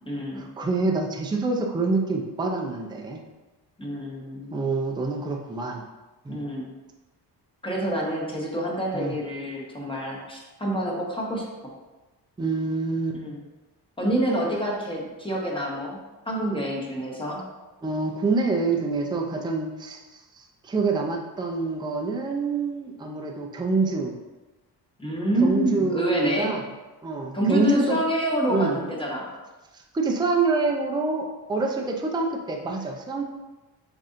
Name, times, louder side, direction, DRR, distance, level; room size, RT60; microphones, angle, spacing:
voice 1, 0.1-0.5 3.8-4.6 6.3-6.7 7.6-11.4 13.2-13.4 14.0-16.0 16.2-17.5 25.0-26.5 27.3-29.3, right 1 dB, 15° left, -3 dB, 1.0 m, -27 dB
voice 2, 0.6-3.2 4.5-5.8 6.2-6.4 8.9-9.1 12.4-13.2 17.8-20.0 20.3-24.1 25.4-26.6 27.0-28.0 28.5-28.8 29.7-33.2, right 3 dB, 10° right, 1 dB, 0.4 m, -26 dB
7.5 x 2.7 x 2.5 m, 1.1 s
cardioid pair, 115°, 41 cm